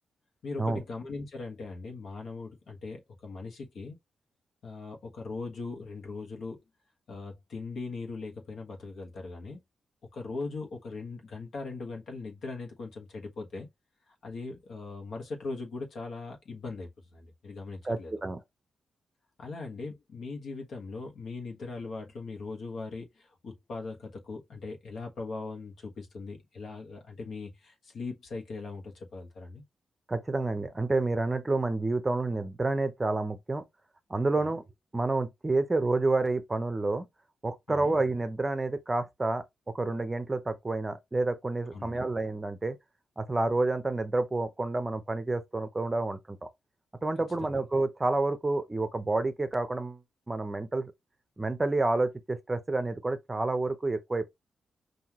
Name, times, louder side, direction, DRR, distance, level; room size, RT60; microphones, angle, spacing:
voice 1, 0.4-4.0 4.6-6.6 7.1-9.6 10.0-13.7 14.2-18.2 19.4-29.6 34.4-34.6 37.7-37.9 41.7-42.0 47.3-47.6, left 3 dB, 65° left, 1.4 m, -40 dB
voice 2, 17.8-18.4 30.1-33.6 34.1-34.6 34.9-37.1 37.4-39.4 39.7-42.8 43.2-46.5 47.0-50.0 50.3-50.9 51.4-54.2, right 2 dB, 20° right, 0.6 m, -29 dB
5.6 x 2.7 x 3.0 m
cardioid pair, 120°, 0 cm